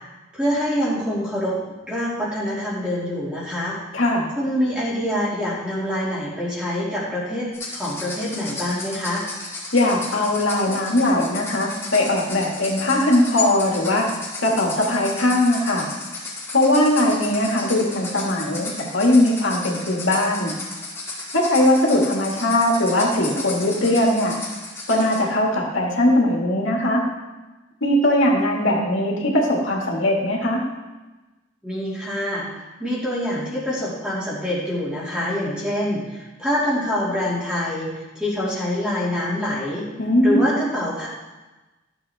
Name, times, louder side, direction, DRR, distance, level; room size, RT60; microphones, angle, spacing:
voice 1, 0.3-1.6 1.9-3.8 4.4-9.2 31.6-37.9 38.1-39.9 40.2-41.1, left 1 dB, 5° right, -8 dB, 2.6 m, -25 dB
voice 2, 3.9-4.3 9.7-14.0 14.4-15.9 16.5-20.5 21.3-24.3 24.9-27.0 27.8-30.6 40.0-40.4, left 1 dB, 90° left, -1 dB, 2.2 m, -20 dB
sound 1, 7.5-25.2, left 3 dB, 15° left, 2.5 m, -34 dB
14.0 x 7.2 x 3.6 m, 1.1 s
head